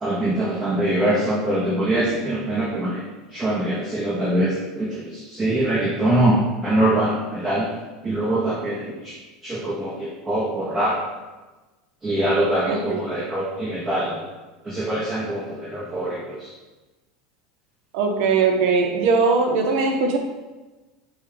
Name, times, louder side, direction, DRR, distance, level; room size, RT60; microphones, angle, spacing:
voice 1, 0.0-3.0 3.3-6.4 6.6-7.7 8.0-9.1 9.4-11.0 12.0-14.2 14.6-16.5, right 1 dB, 20° right, -5 dB, 1.0 m, -23 dB
voice 2, 12.7-13.0 17.9-20.2, right 4 dB, 70° right, 3 dB, 0.8 m, -20 dB
6.6 x 2.4 x 3.4 m, 1.2 s
hypercardioid pair, 95°, 2 cm